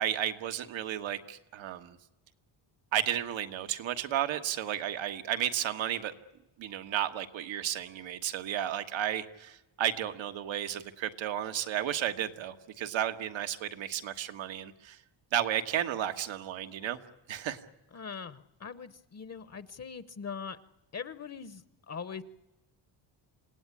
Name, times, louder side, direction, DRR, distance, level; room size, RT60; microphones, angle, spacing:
voice 1, 0.0-2.0 2.9-6.1 6.6-15.0 15.3-17.0 17.3-17.6, right 11 dB, 90° right, 7 dB, 1.6 m, -33 dB
voice 2, 17.9-20.6 20.9-22.2, left 6 dB, 35° left, 14 dB, 0.8 m, -41 dB
27.5 x 17.5 x 9.9 m, 0.99 s
cardioid pair, 150°, 45 cm